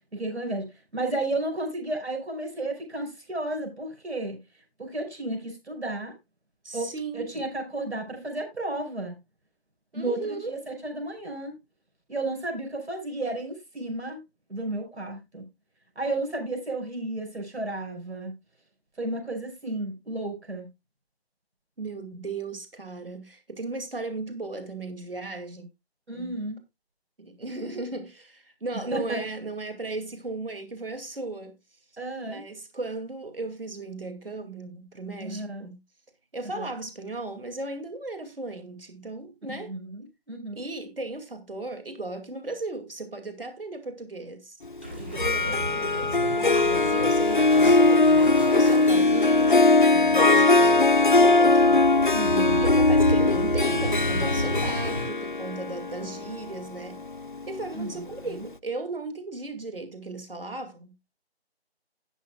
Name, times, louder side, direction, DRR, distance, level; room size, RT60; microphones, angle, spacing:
voice 1, 0.1-0.7 0.9-4.4 4.8-6.1 6.7-9.1 9.9-11.5 12.1-14.2 14.5-15.4 16.0-18.3 19.0-20.7 26.1-26.6 28.9-29.2 32.0-32.4 35.2-35.7 36.6-36.7 39.7-40.6 52.1-52.7 57.7-57.9, right 2 dB, 85° right, 5.5 m, -32 dB
voice 2, 6.6-7.3 9.9-10.6 21.8-25.6 26.1-26.3 27.2-31.5 32.3-35.8 36.3-39.7 40.5-44.6 44.9-48.2 48.5-51.8 52.6-57.0 57.5-60.9, right 2 dB, 60° right, 2.5 m, -36 dB
sound 1, 44.8-55.0, right 1 dB, 10° right, 1.4 m, -32 dB
Harp, 45.0-57.9, left 3 dB, 50° left, 0.5 m, -20 dB
19.0 x 6.3 x 2.3 m
figure-of-eight pair, 175°, 32 cm